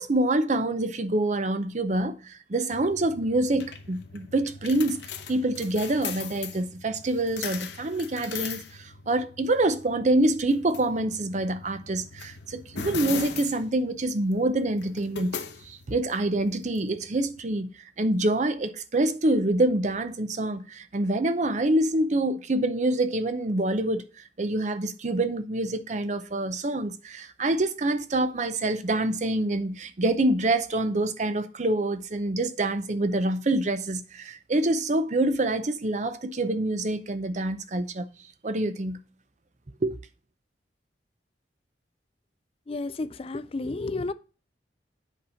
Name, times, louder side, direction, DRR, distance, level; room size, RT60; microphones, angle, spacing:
voice 1, 0.0-15.4 15.6-38.1 38.4-39.0 39.8-40.0, right 2 dB, 40° right, 0.6 m, -26 dB
sound 1, 2.7-17.4, left 6 dB, 75° left, 0.9 m, -40 dB
voice 2, 42.7-44.1, left 2 dB, 30° left, 0.4 m, -31 dB
8.1 x 4.3 x 5.6 m
head